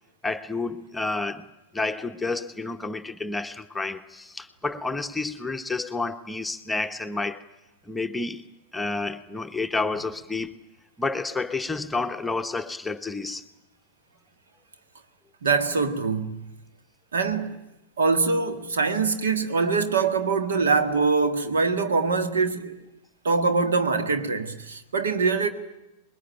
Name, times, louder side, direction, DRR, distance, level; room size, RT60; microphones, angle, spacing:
voice 1, 0.2-1.5 1.7-7.4 7.9-8.4 8.7-10.6 11.0-13.5, left 3 dB, 5° left, 1.0 m, -30 dB
voice 2, 15.4-16.4 17.1-17.6 18.0-22.8 23.2-25.5, right 4 dB, 65° right, 1.9 m, -23 dB
25.0 x 21.0 x 9.1 m
figure-of-eight pair, 90°, 0 cm